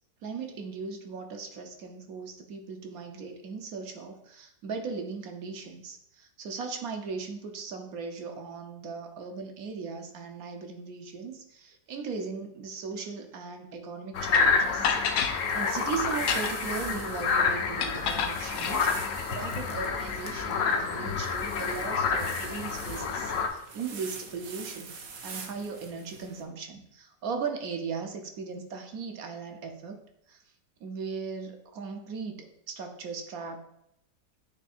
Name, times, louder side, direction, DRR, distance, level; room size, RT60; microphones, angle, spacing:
voice 1, 0.2-30.0 30.3-30.4 30.8-33.6, right 5 dB, 65° right, 5 dB, 1.1 m, -38 dB
sound 1, 14.1-23.5, left 5 dB, 60° left, 0.9 m, -29 dB
sound 2, 14.3-14.4 14.8-15.4 16.1-16.7 17.8-18.8, left 7 dB, 85° left, 1.3 m, -29 dB
sound 3, 15.4-26.4, right 5 dB, 85° right, 1.6 m, -45 dB
8.2 x 3.2 x 4.2 m, 0.76 s
omnidirectional pair, 1.9 m